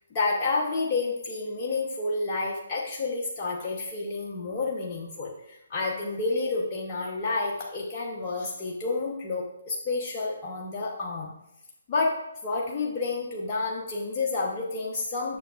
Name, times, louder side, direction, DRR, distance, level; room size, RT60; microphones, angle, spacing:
voice 1, 0.1-11.3 11.9-15.4, left 3 dB, 30° left, -3 dB, 1.0 m, -30 dB
9.0 x 6.6 x 2.5 m, 0.83 s
figure-of-eight pair, 140°, 0 cm